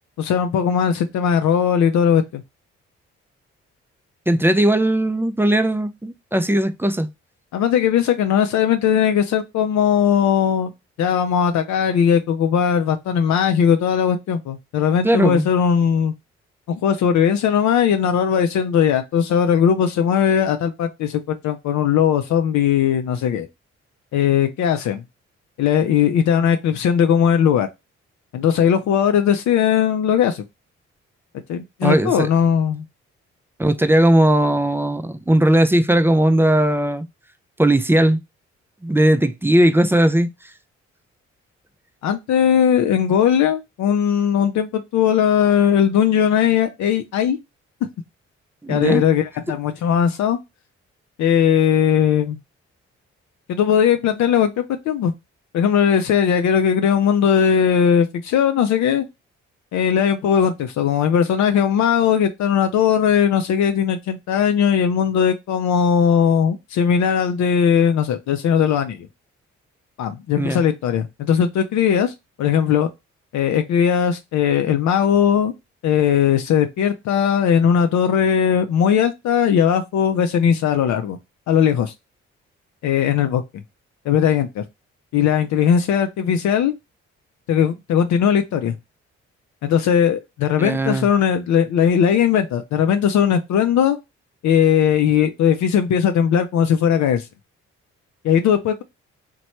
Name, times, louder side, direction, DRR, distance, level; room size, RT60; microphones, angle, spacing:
voice 1, 0.2-2.4 7.5-10.7 11.0-16.1 16.7-23.5 24.1-25.0 25.6-27.7 28.3-30.4 31.5-32.9 42.0-47.4 48.7-50.4 51.2-52.4 53.5-55.1 55.5-59.0 59.7-69.1 70.0-72.9 73.3-75.5 75.8-81.2 81.5-81.9 82.8-83.4 84.1-84.6 85.1-86.7 87.5-88.7 89.6-94.0 94.4-97.3 98.2-98.8, left 8 dB, 65° left, 0.5 m, -18 dB
voice 2, 4.3-7.1 15.0-15.5 31.8-32.3 33.6-37.1 37.6-38.2 38.8-40.3 48.6-49.0 70.4-70.6 90.6-91.1, right 1 dB, 10° right, 0.3 m, -18 dB
3.0 x 2.2 x 2.8 m
hypercardioid pair, 45°, 31 cm